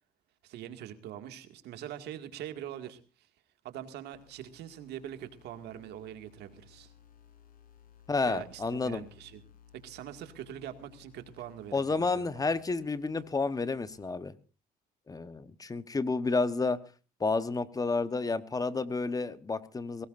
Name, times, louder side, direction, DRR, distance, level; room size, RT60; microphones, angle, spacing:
voice 1, 0.4-3.3 3.6-6.9 8.3-9.4 9.8-12.3, right 11 dB, 80° right, 8 dB, 2.2 m, -43 dB
sound 1, 4.1-14.1, left 8 dB, 55° left, 5.3 m, -59 dB
voice 2, 8.1-9.0 11.7-14.3 15.1-16.8 17.2-20.1, left 3 dB, 20° left, 13 dB, 1.1 m, -30 dB
22.0 x 19.0 x 2.6 m, 0.34 s
cardioid pair, 110°, 17 cm